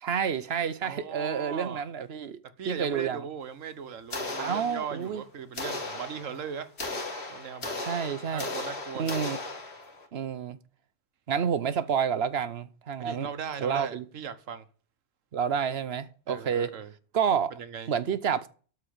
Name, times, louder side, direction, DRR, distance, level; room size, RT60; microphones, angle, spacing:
voice 1, 0.0-2.4 2.7-3.2 4.4-5.2 7.8-8.5 9.0-9.4 10.1-10.6 11.3-13.3 13.6-14.0 15.3-16.7 17.1-17.5 17.9-18.5, right 7 dB, 60° right, 1.0 m, -29 dB
voice 2, 0.8-1.8 2.6-6.7 7.3-7.7 8.3-9.2 13.0-14.7 16.3-16.9 17.5-17.9, right 7 dB, 90° right, 1.4 m, -38 dB
sound 1, 4.1-5.2 5.6-10.1, left 3 dB, 55° left, 2.1 m, -36 dB
13.0 x 4.5 x 8.6 m
omnidirectional pair, 1.3 m